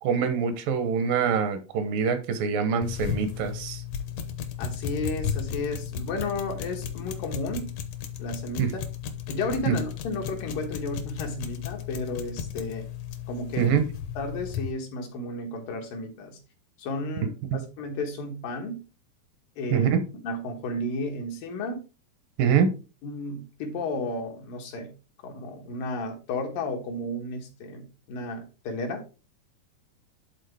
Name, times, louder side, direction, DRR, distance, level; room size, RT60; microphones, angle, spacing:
voice 1, 0.0-3.8 8.6-8.7 9.7-9.8 13.6-13.9 17.5-17.6 19.7-20.0 22.4-22.7, right 7 dB, 85° right, 2.7 m, -24 dB
sound 1, 2.8-14.7, left 8 dB, 70° left, 1.6 m, -35 dB
voice 2, 4.6-7.7 8.2-8.8 9.3-12.9 13.3-13.8 14.2-16.4 16.8-18.8 19.6-19.9 20.2-21.8 23.0-24.9 25.2-29.0, left 2 dB, 85° left, 3.2 m, -33 dB
11.0 x 4.0 x 3.4 m
omnidirectional pair, 3.8 m